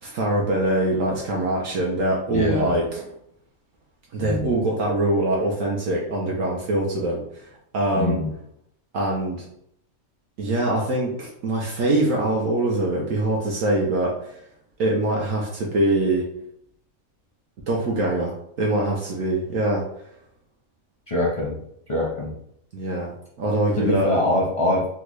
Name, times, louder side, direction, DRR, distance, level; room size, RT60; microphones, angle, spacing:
voice 1, 0.0-3.0 4.1-7.5 7.7-8.2 8.9-9.5 10.4-14.4 14.8-16.2 17.7-19.8 22.7-23.1 23.4-24.1, right 1 dB, 70° right, -2 dB, 1.0 m, -23 dB
voice 2, 2.3-2.8 4.2-4.5 7.9-8.3 21.1-21.6 21.9-22.3 23.8-24.9, left 1 dB, 35° left, -4 dB, 0.5 m, -23 dB
3.7 x 2.2 x 3.0 m, 0.73 s
omnidirectional pair, 1.5 m